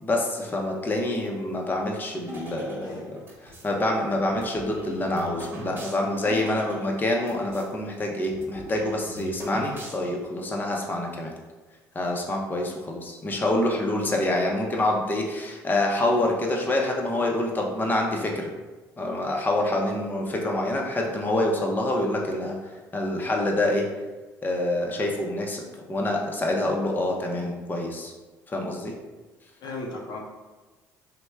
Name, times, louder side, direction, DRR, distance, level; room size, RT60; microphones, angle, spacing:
voice 1, 0.0-11.3 11.9-18.5 19.0-23.9 24.4-28.1 28.5-28.9, left 1 dB, 25° left, 0 dB, 0.6 m, -26 dB
sound 1, 2.3-3.7 4.3-7.7 8.0-8.1 8.3-10.3, equal, 30° right, 1.1 m, -41 dB
voice 2, 2.5-3.1 29.6-30.2, left 2 dB, 65° left, 0 dB, 0.6 m, -37 dB
3.1 x 2.1 x 3.4 m, 1.2 s
supercardioid pair, 75°, 8 cm